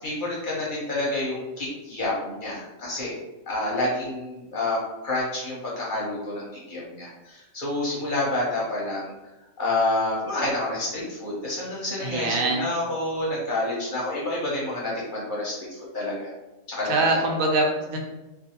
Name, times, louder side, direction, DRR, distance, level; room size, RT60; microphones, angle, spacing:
voice 1, 0.0-3.1 3.5-9.1 9.6-16.3 16.7-17.2, left 2 dB, 50° left, -5 dB, 0.7 m, -28 dB
voice 2, 12.0-12.6 16.8-18.0, right 2 dB, 85° right, 1 dB, 1.0 m, -23 dB
2.4 x 2.3 x 2.7 m, 1.0 s
omnidirectional pair, 1.4 m